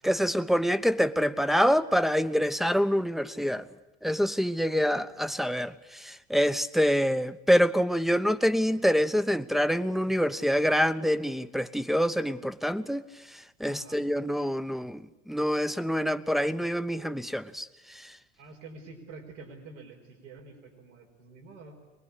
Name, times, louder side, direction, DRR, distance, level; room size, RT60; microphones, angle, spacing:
voice 1, 0.0-3.6 4.0-13.0 13.6-17.7 17.9-18.1, equal, ahead, 0.9 m, -26 dB
voice 2, 4.7-5.2 13.7-14.0 18.4-21.8, right 3 dB, 85° right, 5.0 m, -48 dB
23.5 x 20.5 x 8.4 m
hypercardioid pair, 90°, 36 cm